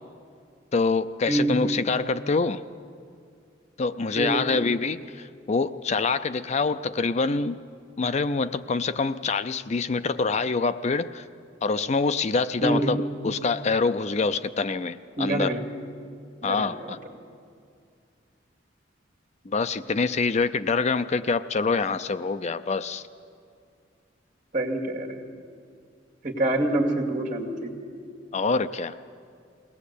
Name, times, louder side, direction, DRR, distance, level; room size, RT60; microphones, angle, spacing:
voice 1, 0.7-2.6 3.8-7.6 8.0-11.2 11.6-15.6 16.4-17.0 19.5-23.1 28.3-28.9, left 4 dB, 35° left, 12 dB, 0.5 m, -25 dB
voice 2, 1.3-1.6 4.2-4.5 12.6-12.9 15.2-15.6 16.4-16.9 24.5-25.2 26.2-27.8, right 1 dB, 45° right, -1 dB, 2.5 m, -26 dB
21.5 x 18.0 x 8.4 m, 2.3 s
head